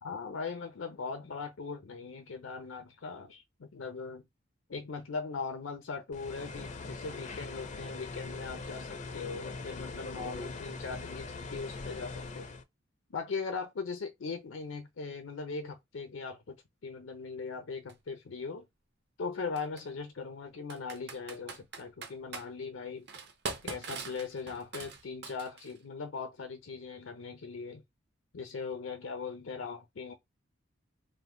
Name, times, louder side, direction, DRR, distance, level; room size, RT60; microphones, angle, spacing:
voice 1, 0.0-4.2 4.7-12.5 13.1-16.6 16.8-18.7 19.2-23.1 23.6-27.8 28.3-30.1, left 4 dB, 85° left, 0.6 m, -40 dB
sound 1, 6.1-12.6, left 3 dB, 40° left, 0.4 m, -41 dB
Computer keyboard, 17.9-18.0 19.6-19.8 20.7-22.5 23.1-25.8, right 4 dB, 60° right, 0.7 m, -41 dB
2.6 x 2.2 x 3.6 m
head